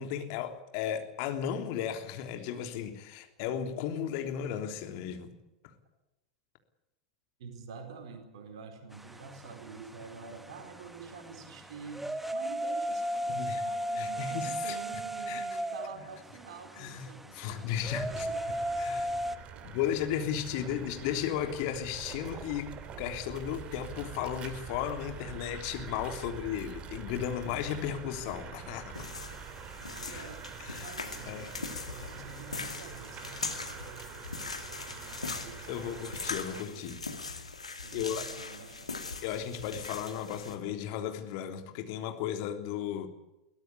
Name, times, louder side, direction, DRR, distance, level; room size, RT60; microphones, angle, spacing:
voice 1, 0.0-5.3 13.4-13.6 14.0-14.8 15.3-15.4 16.8-17.1 17.3-18.3 18.8-19.0 19.6-29.1 30.1-30.3 30.6-30.9 31.3-31.5 35.7-37.0 37.9-38.2 39.2-43.1, left 9 dB, 50° left, 3.4 m, -35 dB
voice 2, 7.4-19.8 20.6-20.9 26.2-26.3 29.9-36.1 36.5-37.0 37.7-39.0, right 5 dB, 65° right, 4.6 m, -48 dB
sound 1, 8.9-19.4, right 1 dB, 5° right, 1.3 m, -36 dB
sound 2, 17.8-36.6, right 8 dB, 35° right, 2.6 m, -45 dB
sound 3, 28.9-40.5, left 4 dB, 85° left, 2.5 m, -41 dB
22.5 x 17.5 x 8.4 m
figure-of-eight pair, 85°, 3 cm